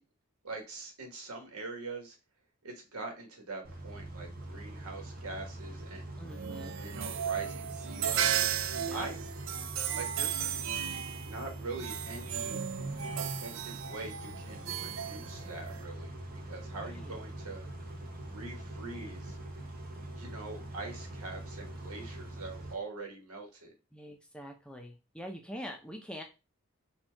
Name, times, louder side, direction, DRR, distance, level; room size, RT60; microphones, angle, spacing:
voice 1, 0.4-2.2 2.6-6.1 6.8-8.6 8.9-9.2 9.9-10.7 11.2-12.6 13.2-16.1 16.4-17.7 18.3-19.4 20.1-23.7, right 3 dB, 90° right, 2 dB, 1.5 m, -43 dB
Car / Idling / Accelerating revving vroom, 3.6-22.7, right 1 dB, 40° right, 0.9 m, -43 dB
voice 2, 6.2-6.7 8.8-9.1 16.8-17.1 23.9-26.2, equal, 5° left, 3 dB, 0.5 m, -44 dB
sound 1, 6.3-15.8, right 9 dB, 60° right, 0.4 m, -35 dB
4.4 x 2.4 x 4.4 m, 0.28 s
head